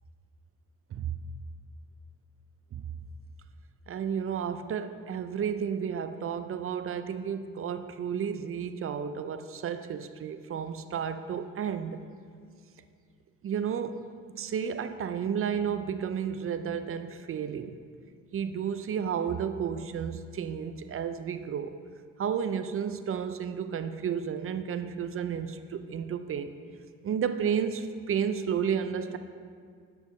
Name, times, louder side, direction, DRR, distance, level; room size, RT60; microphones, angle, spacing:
voice 1, 3.9-12.0 13.4-14.0 14.3-17.8 18.3-21.8 22.2-26.6 27.0-29.2, right 7 dB, 40° right, 10 dB, 0.4 m, -32 dB
11.5 x 5.2 x 3.1 m, 2.1 s
supercardioid pair, 70°, 34 cm